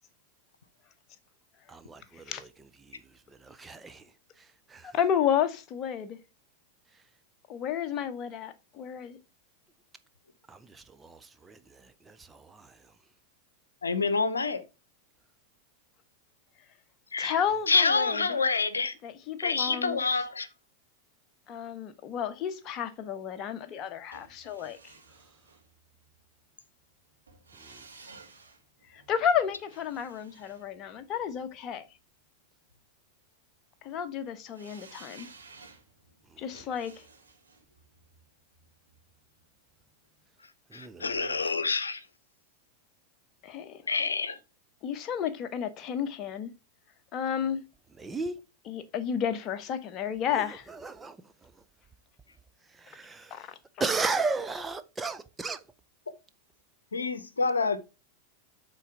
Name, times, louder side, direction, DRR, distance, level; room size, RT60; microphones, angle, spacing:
voice 1, 1.7-2.5 2.8-3.0 3.3-4.1 4.4-4.9 10.5-12.8 27.6-27.8 36.3-36.4 40.7-41.0 48.0-48.4 50.4-51.5 52.7-53.4 53.8-55.6, right 4 dB, 10° right, 0.6 m, -36 dB
voice 2, 4.8-6.2 7.5-9.2 17.2-18.2 19.0-20.0 21.5-24.9 28.9-31.9 33.8-35.3 36.4-37.0 43.4-43.8 44.8-46.5 47.1-47.6 48.7-50.7 53.3-53.6, left 8 dB, 35° left, 0.9 m, -32 dB
voice 3, 13.8-14.6 17.1-17.4 17.7-18.9 19.4-20.5 40.4-42.1 43.9-44.4 56.9-57.8, left 4 dB, 75° left, 0.8 m, -27 dB
sound 1, 24.1-26.2 27.3-31.5 34.5-39.5 39.8-39.9, right 4 dB, 75° right, 2.3 m, -54 dB
8.2 x 4.0 x 4.6 m
figure-of-eight pair, 90°, 0 cm